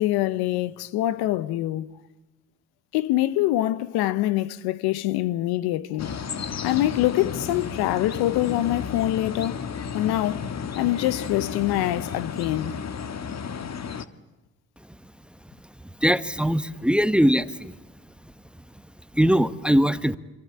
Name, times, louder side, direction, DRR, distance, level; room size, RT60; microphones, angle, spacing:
voice 1, 0.0-2.0 2.9-6.1 6.6-9.6 9.9-10.5 10.7-12.8, left 15 dB, 80° left, 1.1 m, -24 dB
sound 1, 6.0-14.0, left 6 dB, 45° left, 1.7 m, -33 dB
voice 2, 16.0-17.7 19.1-20.2, equal, 5° right, 1.2 m, -21 dB
27.0 x 23.5 x 8.8 m
supercardioid pair, 65°, 37 cm